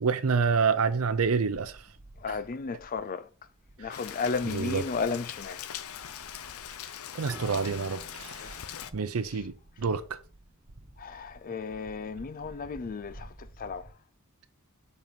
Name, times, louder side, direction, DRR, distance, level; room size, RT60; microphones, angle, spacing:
voice 1, 0.0-1.8 4.5-4.8 7.1-8.6 8.9-10.2, right 5 dB, 80° right, 0.6 m, -28 dB
sound 1, 1.4-13.9, right 1 dB, 35° right, 1.3 m, -53 dB
voice 2, 2.2-3.3 3.8-5.7 8.4-8.6 9.3-9.4 11.0-13.9, left 4 dB, 40° left, 0.4 m, -34 dB
Rain, 3.9-8.9, left 9 dB, 85° left, 0.6 m, -41 dB
Bowed string instrument, 7.3-10.8, right 2 dB, 10° right, 1.7 m, -51 dB
7.3 x 4.6 x 5.2 m
head